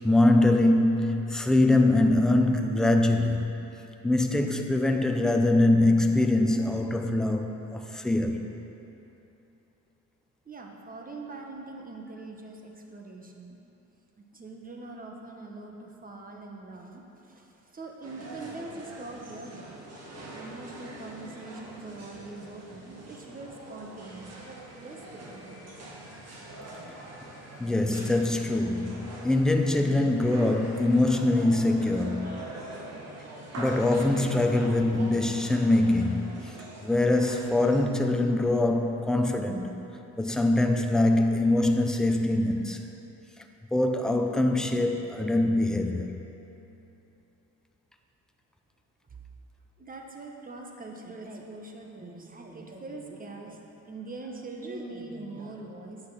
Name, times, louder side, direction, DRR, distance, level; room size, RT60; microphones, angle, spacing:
voice 1, 0.0-3.5 4.0-8.4 27.6-32.6 33.6-36.4 36.8-39.8 40.2-42.8 43.7-46.1, left 2 dB, ahead, 4 dB, 0.6 m, -23 dB
voice 2, 10.5-13.6 14.2-19.7 20.3-25.5 49.8-56.0, right 2 dB, 30° right, 1 dB, 1.2 m, -42 dB
sound 1, 18.0-37.8, right 1 dB, 55° right, 1.8 m, -44 dB
8.4 x 6.3 x 5.8 m, 3.0 s
cardioid pair, 90°, 30 cm